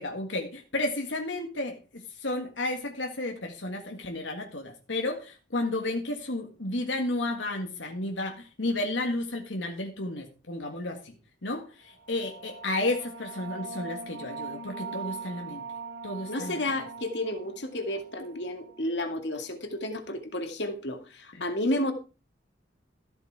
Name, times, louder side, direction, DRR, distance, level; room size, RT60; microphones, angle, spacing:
voice 1, 0.0-11.1 11.4-15.6 16.0-16.6 21.3-21.4, left 2 dB, 90° left, 3 dB, 1.8 m, -32 dB
sound 1, 11.9-19.2, right 4 dB, 75° right, 2.0 m, -42 dB
voice 2, 16.3-21.9, left 1 dB, 70° left, 6 dB, 2.2 m, -31 dB
14.0 x 8.1 x 4.8 m, 0.34 s
head